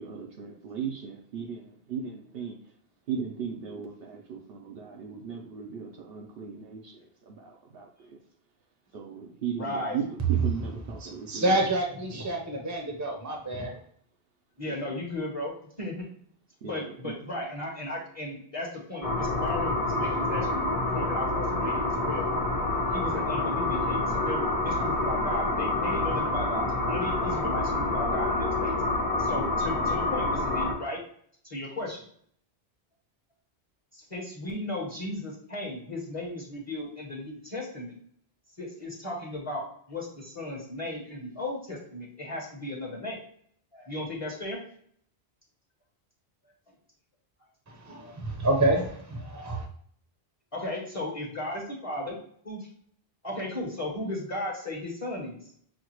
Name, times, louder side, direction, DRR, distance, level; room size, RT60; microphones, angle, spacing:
voice 1, 0.0-2.5 3.1-6.9 7.3-7.9 8.9-11.5 16.6-17.1, right 7 dB, 65° right, 1 dB, 0.8 m, -37 dB
voice 2, 9.5-10.0 14.6-15.9 16.6-22.3 22.9-28.8 29.2-31.0 31.4-32.0 33.9-37.9 38.6-43.2 43.7-44.6 50.5-52.2 52.4-52.7 53.2-55.4, left 1 dB, 35° left, -3 dB, 1.1 m, -35 dB
voice 3, 11.0-13.7 47.7-49.7, right 2 dB, 20° right, 1 dB, 0.7 m, -28 dB
sound 1, 19.0-30.7, left 2 dB, 60° left, 1.2 m, -27 dB
6.3 x 2.3 x 3.0 m, 0.63 s
omnidirectional pair, 1.1 m